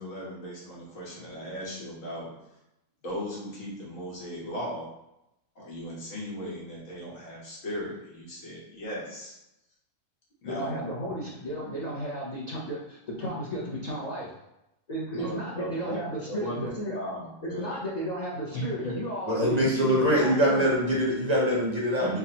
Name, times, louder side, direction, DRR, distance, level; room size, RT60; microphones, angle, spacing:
voice 1, 0.0-2.3 3.0-4.9 5.5-9.4 10.4-11.2 15.1-16.0 16.3-17.8 18.5-18.9 22.0-22.2, equal, 85° left, -5 dB, 1.6 m, -37 dB
voice 2, 10.5-14.3 14.9-17.0 17.4-20.7, equal, 40° left, -7 dB, 0.7 m, -34 dB
voice 3, 19.3-22.2, equal, 40° right, -4 dB, 0.7 m, -24 dB
3.5 x 3.5 x 2.9 m, 0.88 s
omnidirectional pair, 1.3 m